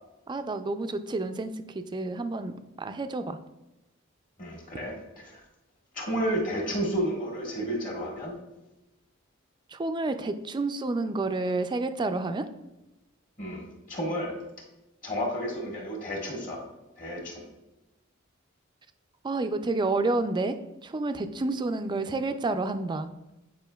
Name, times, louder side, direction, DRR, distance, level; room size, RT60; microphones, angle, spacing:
voice 1, 0.3-3.4 9.7-12.4 19.2-20.6 20.8-23.1, right 2 dB, 20° right, 9 dB, 0.3 m, -29 dB
voice 2, 4.4-5.4 5.9-8.3 13.4-14.3 15.0-16.6 17.0-17.4, equal, 40° left, -2 dB, 1.6 m, -31 dB
8.9 x 4.9 x 2.3 m, 1.0 s
head